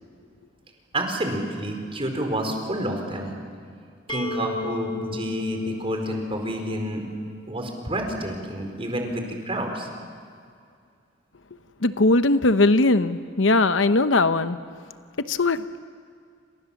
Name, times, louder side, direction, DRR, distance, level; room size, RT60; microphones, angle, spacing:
voice 1, 0.9-3.4 4.1-7.1 7.5-9.9, right 1 dB, 30° right, 3 dB, 4.5 m, -29 dB
sound 1, 4.1-7.8, left 4 dB, 25° left, 1.3 m, -36 dB
voice 2, 11.8-14.6 15.3-15.8, left 2 dB, 75° left, 11 dB, 0.9 m, -20 dB
29.0 x 26.5 x 7.2 m, 2.2 s
head